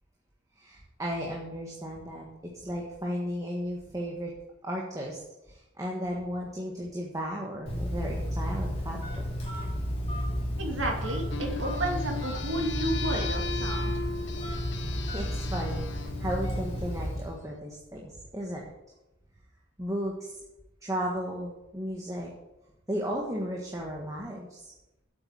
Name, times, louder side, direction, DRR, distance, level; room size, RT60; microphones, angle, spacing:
voice 1, 0.6-4.3 4.6-5.2 5.5-9.2 15.0-18.7 19.8-20.4 20.8-22.3 22.9-24.7, equal, 15° right, -2 dB, 1.5 m, -35 dB
Telephone, 7.7-17.4, equal, 35° left, 3.4 m, -32 dB
voice 2, 10.6-13.9, right 1 dB, 85° right, 1 dB, 2.6 m, -32 dB
sound 1, 11.3-17.3, left 4 dB, 65° left, 1.3 m, -38 dB
8.4 x 8.0 x 8.6 m, 0.93 s
head